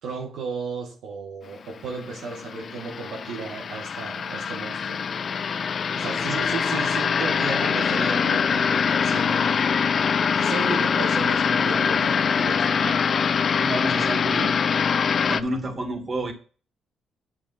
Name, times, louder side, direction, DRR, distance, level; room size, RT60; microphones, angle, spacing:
voice 1, 0.0-5.0 5.9-9.7 10.3-12.7, right 4 dB, 80° right, 1.8 m, -34 dB
sound 1, 1.9-15.4, left 6 dB, 50° left, 0.5 m, -23 dB
voice 2, 13.6-14.6 15.3-16.3, right 1 dB, 40° right, 2.6 m, -30 dB
9.7 x 5.8 x 4.4 m
cardioid pair, 90°, 0 cm